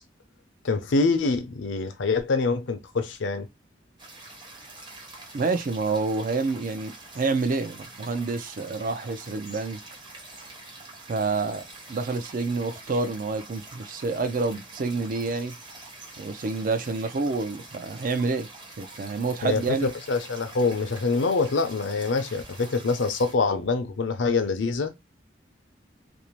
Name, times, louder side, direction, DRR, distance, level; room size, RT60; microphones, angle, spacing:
voice 1, 0.6-3.5 19.4-24.9, left 4 dB, 85° left, 0.6 m, -25 dB
sound 1, 4.0-23.3, right 2 dB, 25° right, 0.8 m, -45 dB
voice 2, 5.3-9.8 11.1-15.5 16.2-18.5 18.8-19.9, right 3 dB, 45° right, 0.4 m, -28 dB
2.6 x 2.0 x 2.9 m
head